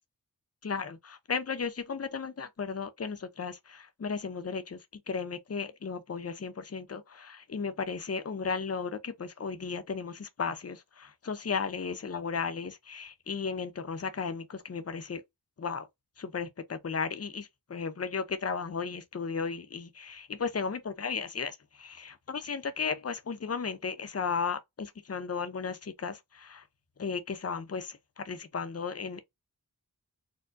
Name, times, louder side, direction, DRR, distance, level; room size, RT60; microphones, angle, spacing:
voice 1, 0.6-4.8 5.1-15.2 15.6-15.9 16.2-26.6 27.0-29.2, left 5 dB, 45° left, 0.7 m, -35 dB
4.4 x 2.2 x 2.5 m
wide cardioid pair, 70°, 36 cm